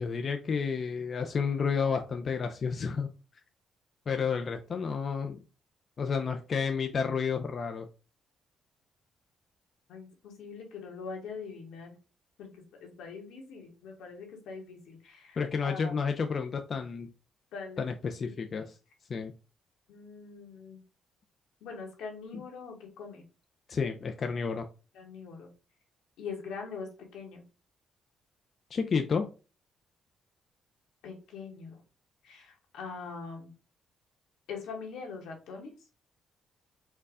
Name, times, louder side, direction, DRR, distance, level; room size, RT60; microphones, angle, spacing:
voice 1, 0.0-3.1 4.1-5.4 6.0-7.9 15.4-17.1 17.8-18.7 19.1-19.3 22.3-22.4 23.7-24.7 28.7-29.3, left 5 dB, 45° left, 5 dB, 0.5 m, -31 dB
voice 2, 9.9-12.0 12.4-12.5 12.8-16.0 17.5-17.9 18.2-18.7 19.9-20.8 21.6-23.2 24.9-25.5 26.2-27.4 31.0-31.8 32.2-33.5 34.5-35.7, left 5 dB, 85° left, 1 dB, 1.5 m, -43 dB
4.6 x 2.3 x 4.8 m, 0.33 s
cardioid pair, 90°, 0 cm